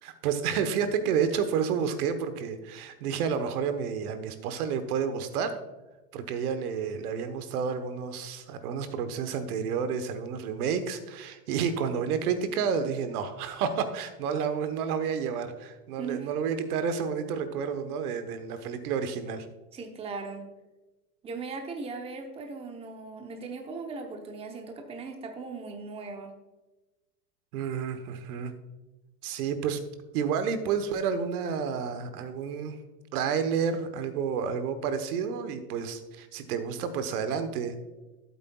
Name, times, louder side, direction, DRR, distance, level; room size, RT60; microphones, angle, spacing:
voice 1, 0.0-5.6 6.1-19.5 27.5-28.5 29.2-29.8 30.1-32.8 33.1-37.8, right 6 dB, 65° right, 10 dB, 1.1 m, -30 dB
voice 2, 16.0-16.3 19.7-20.5 21.2-26.3, right 4 dB, 10° right, 4 dB, 0.8 m, -38 dB
13.0 x 8.2 x 2.3 m, 1.1 s
hypercardioid pair, 125°, 48 cm